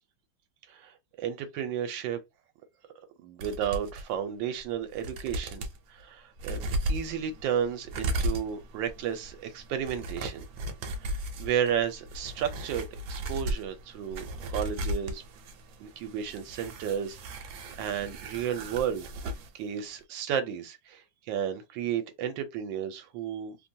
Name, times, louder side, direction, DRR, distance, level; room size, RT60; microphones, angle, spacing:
voice 1, 0.7-2.2 3.2-6.6 6.9-10.4 10.8-15.2 15.8-19.1 19.5-23.6, right 9 dB, 90° right, 1.4 m, -33 dB
sound 1, 3.4-4.0 4.6-4.7 4.9-5.8 6.4-19.5 19.8-19.9, right 1 dB, 70° right, 1.1 m, -36 dB
3.2 x 2.2 x 2.6 m
omnidirectional pair, 2.0 m